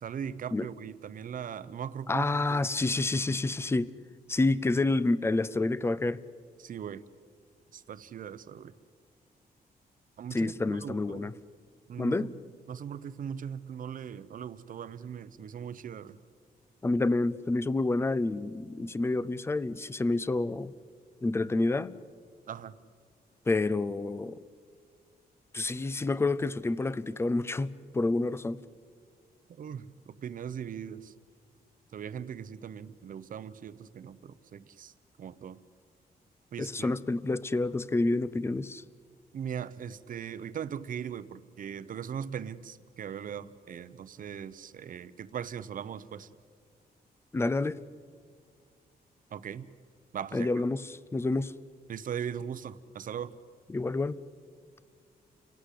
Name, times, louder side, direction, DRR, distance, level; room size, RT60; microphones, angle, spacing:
voice 1, 0.0-2.7 6.6-7.0 7.7-8.7 10.2-11.3 11.9-12.3 12.7-16.2 22.5-22.8 29.6-31.1 31.9-34.9 35.2-35.6 36.5-37.0 39.3-46.3 49.3-49.7 50.1-50.5 51.9-53.3, right 8 dB, 55° right, 0.8 m, -39 dB
voice 2, 2.1-3.9 4.3-6.2 10.3-11.3 12.0-12.3 16.8-20.7 21.2-21.9 23.5-24.4 25.5-28.6 36.6-38.8 47.3-47.8 50.3-51.5 53.7-54.2, left 2 dB, 15° left, 0.5 m, -28 dB
29.5 x 17.5 x 8.5 m
wide cardioid pair, 160°, 16 cm